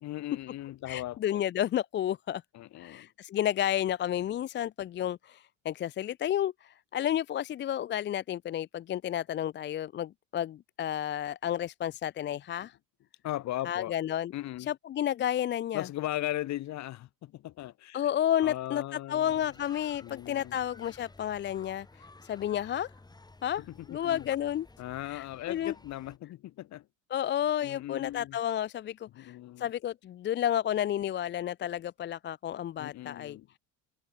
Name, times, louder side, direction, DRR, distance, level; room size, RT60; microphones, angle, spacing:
voice 1, 0.0-1.4 2.5-3.1 13.2-13.9 14.3-14.7 15.7-18.1 18.4-19.5 20.0-20.5 23.6-24.3 24.8-26.9 27.6-28.4 29.1-29.7 32.8-33.5, left 14 dB, 45° left, 1.5 m, -38 dB
voice 2, 0.9-2.4 2.8-12.8 13.6-14.3 14.7-15.9 17.9-18.8 19.1-22.9 23.4-24.7 25.1-25.7 27.1-33.4, left 11 dB, 30° left, 0.5 m, -31 dB
sound 1, 19.2-26.2, left 2 dB, 10° left, 7.8 m, -54 dB
supercardioid pair, 115°, 37 cm